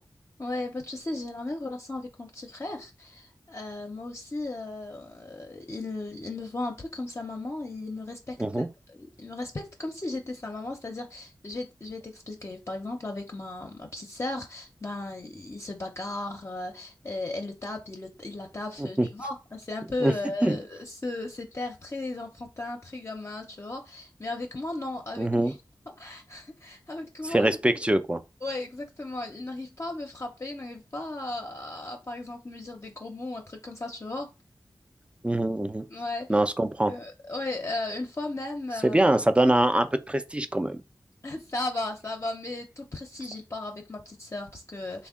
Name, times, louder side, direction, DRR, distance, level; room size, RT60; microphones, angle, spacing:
voice 1, 0.4-25.6 26.0-27.8 28.4-34.3 35.9-36.4 36.9-39.1 41.2-45.1, left 2 dB, 35° left, 0.5 m, -36 dB
voice 2, 25.2-25.5 27.2-28.2 35.2-35.8 36.3-36.9 38.8-40.8, right 1 dB, 15° right, 0.3 m, -23 dB
3.5 x 2.1 x 3.5 m
wide cardioid pair, 70°, 8 cm